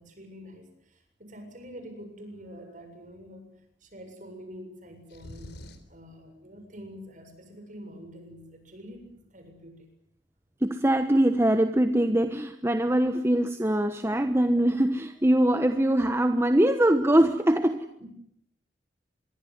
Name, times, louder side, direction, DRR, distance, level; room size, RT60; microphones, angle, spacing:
voice 1, 0.0-5.6 5.9-9.9 18.0-18.1, equal, 40° right, 6 dB, 7.5 m, -46 dB
sound 1, 5.1-6.0, equal, 60° left, 3.8 m, -45 dB
voice 2, 10.6-17.9, right 1 dB, 15° right, 8 dB, 1.2 m, -23 dB
25.5 x 23.0 x 9.6 m, 0.72 s
head